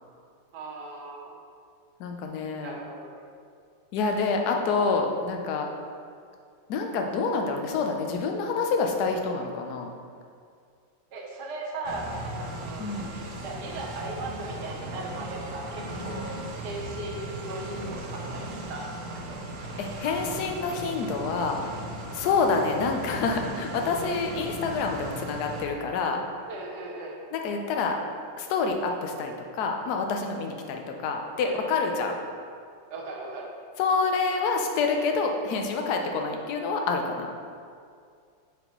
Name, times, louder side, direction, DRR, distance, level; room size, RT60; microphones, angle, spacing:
voice 1, 0.5-1.4 2.6-3.3 11.1-12.9 13.4-16.4 16.6-19.4 26.5-27.2 31.4-32.1 32.9-33.5, right 2 dB, 60° right, -1 dB, 1.4 m, -38 dB
voice 2, 2.0-2.8 3.9-5.7 6.7-9.9 12.8-13.1 16.0-16.1 19.8-21.6 22.1-26.2 27.3-28.0 28.4-32.2 33.8-37.3, left 4 dB, 70° left, 3 dB, 1.0 m, -27 dB
sound 1, 11.8-25.6, right 1 dB, 85° right, 0.6 m, -37 dB
8.0 x 4.1 x 3.0 m, 2.3 s
omnidirectional pair, 2.1 m